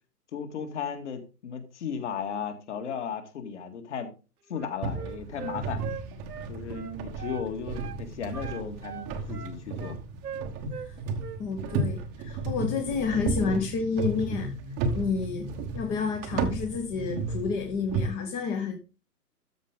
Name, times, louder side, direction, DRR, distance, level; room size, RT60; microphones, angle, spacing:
voice 1, 0.3-4.1 4.5-5.8 6.5-10.0, left 7 dB, 45° left, 7 dB, 2.1 m, -35 dB
Wind instrument woodwind instrument, 4.5-7.5 7.7-8.0 8.3-10.9 11.2-11.9, right 8 dB, 70° right, 1.2 m, -41 dB
sound 1, 4.8-18.1, right 3 dB, 15° right, 1.0 m, -33 dB
voice 2, 11.4-14.5 14.9-15.5 15.7-18.8, left 5 dB, 15° left, 5 dB, 0.8 m, -30 dB
13.0 x 5.1 x 3.7 m, 0.32 s
figure-of-eight pair, 135°, 48 cm